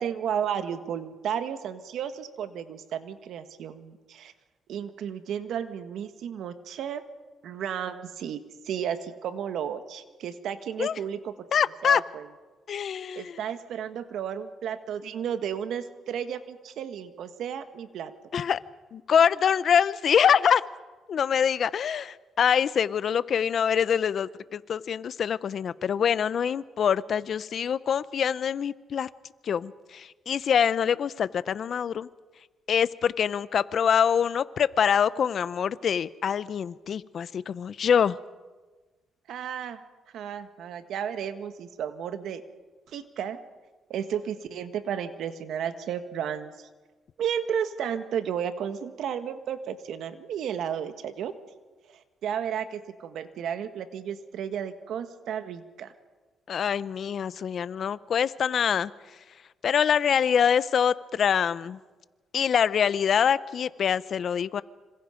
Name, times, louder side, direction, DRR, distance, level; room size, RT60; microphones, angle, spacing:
voice 1, 0.0-4.3 4.7-7.0 7.4-11.3 11.8-12.3 13.1-18.1 39.3-39.8 40.1-42.4 42.9-43.4 43.9-46.5 47.2-51.3 51.9-55.9, right 8 dB, 75° right, 9 dB, 1.7 m, -33 dB
voice 2, 11.5-12.0 12.7-13.4 18.3-18.6 18.9-20.6 21.1-29.1 29.4-32.1 32.7-38.2 56.5-58.9 59.6-61.8 62.3-64.6, left 8 dB, 55° left, 16 dB, 0.8 m, -25 dB
26.5 x 26.0 x 5.2 m, 1.3 s
cardioid pair, 90°, 0 cm